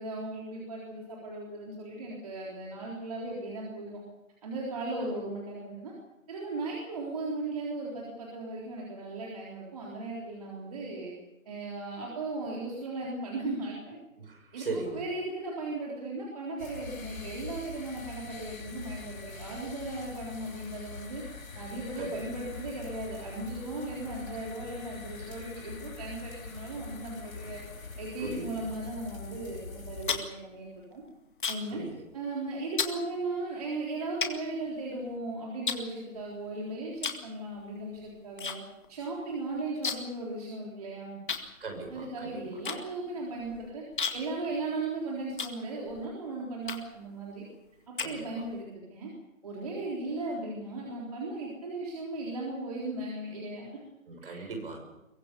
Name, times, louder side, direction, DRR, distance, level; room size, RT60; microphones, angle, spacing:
voice 1, 0.0-4.0 4.4-5.9 6.3-11.1 11.5-14.0 14.5-21.2 21.5-27.6 28.0-31.0 31.5-31.8 32.1-38.6 38.9-41.2 41.9-43.8 44.1-47.4 47.9-49.1 49.4-53.7 54.2-54.5, right 2 dB, 25° right, -3 dB, 3.8 m, -37 dB
voice 2, 14.2-15.0 21.9-22.2 28.2-28.6 31.7-32.0 41.6-42.4 48.0-48.2 54.1-54.8, right 3 dB, 45° right, 3 dB, 6.4 m, -38 dB
sound 1, 16.6-30.2, left 4 dB, 75° left, 4.6 m, -43 dB
sound 2, 29.7-31.8 32.1-32.4 32.8-33.0 33.6-33.7 34.2-35.2 35.6-36.5 37.0-37.3 37.6-38.6 38.8-38.9 39.2-40.2 40.5-40.6 41.3-46.0 46.6-47.1 47.5-48.6, left 6 dB, 35° left, 2.1 m, -35 dB
23.0 x 22.0 x 6.8 m, 0.93 s
hypercardioid pair, 175°, 41 cm